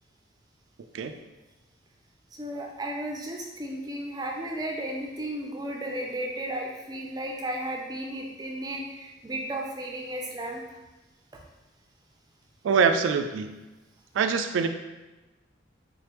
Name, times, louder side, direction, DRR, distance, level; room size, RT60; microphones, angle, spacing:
voice 1, 2.4-10.6, right 1 dB, 20° right, 0 dB, 0.4 m, -34 dB
voice 2, 12.6-13.5 14.1-14.7, right 5 dB, 80° right, 8 dB, 0.3 m, -24 dB
3.9 x 3.3 x 3.0 m, 1.1 s
head